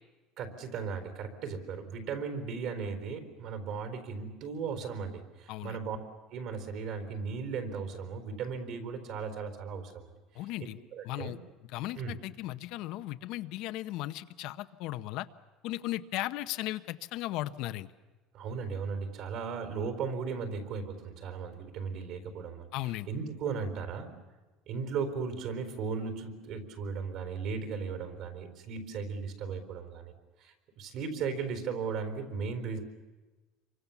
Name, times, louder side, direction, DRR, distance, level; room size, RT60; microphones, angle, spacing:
voice 1, 0.4-6.0 6.3-10.1 10.9-11.3 12.0-12.1 18.3-22.7 23.1-24.2 24.7-30.1 30.4-32.8, right 5 dB, 55° right, 8 dB, 4.1 m, -36 dB
voice 2, 10.3-10.8 11.0-11.4 11.7-15.3 15.6-17.9 22.7-23.1, left 16 dB, 60° left, 11 dB, 0.8 m, -36 dB
27.5 x 24.0 x 7.2 m, 1.2 s
cardioid pair, 160°, 0 cm